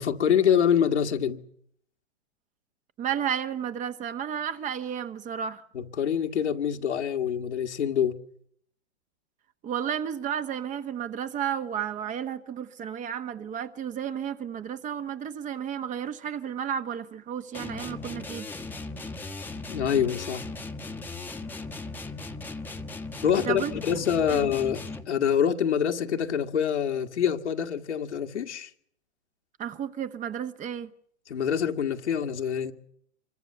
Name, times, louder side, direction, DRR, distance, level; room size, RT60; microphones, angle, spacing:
voice 1, 0.0-1.4 5.7-8.2 19.7-20.5 23.2-24.8 25.1-28.7 31.3-32.7, left 8 dB, 80° left, 2.1 m, -25 dB
voice 2, 3.0-5.6 9.6-18.5 23.4-23.7 24.3-24.5 29.6-30.9, right 8 dB, 20° right, 1.1 m, -32 dB
sound 1, 17.5-25.2, left 3 dB, 5° left, 1.2 m, -38 dB
26.0 x 23.0 x 6.8 m
hypercardioid pair, 120°, 34 cm